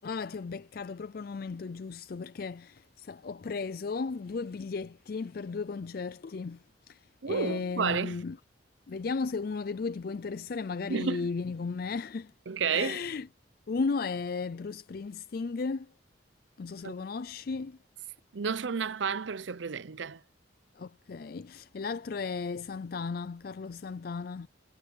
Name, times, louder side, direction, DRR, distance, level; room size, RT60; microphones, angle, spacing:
voice 1, 0.0-8.4 8.9-12.3 12.7-13.3 13.7-15.9 16.6-17.8 20.7-24.5, left 4 dB, 50° left, 0.4 m, -35 dB
voice 2, 7.2-8.2 10.9-11.3 12.5-13.0 16.8-16.9 18.3-20.2, right 5 dB, 75° right, 0.6 m, -31 dB
head